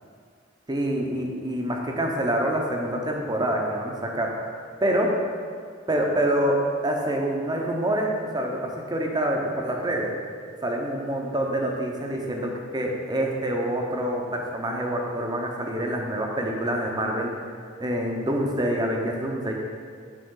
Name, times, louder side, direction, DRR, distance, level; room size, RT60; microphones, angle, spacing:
voice 1, 0.7-4.5 4.8-5.1 5.9-6.6 6.8-8.6 8.9-10.1 10.6-17.3 17.8-19.5, right 1 dB, 20° right, 0 dB, 0.7 m, -26 dB
7.8 x 4.5 x 3.8 m, 2.1 s
head